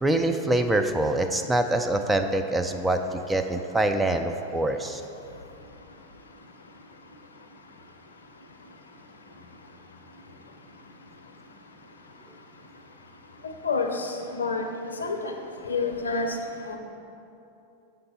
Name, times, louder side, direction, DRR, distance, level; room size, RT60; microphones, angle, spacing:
voice 1, 0.0-5.0, right 1 dB, 5° right, 5 dB, 0.3 m, -25 dB
voice 2, 13.6-14.6 15.0-15.3 15.7-16.3 16.7-16.8, left 4 dB, 70° left, 4 dB, 0.6 m, -28 dB
6.6 x 5.8 x 4.1 m, 2.8 s
figure-of-eight pair, 90°, 0 cm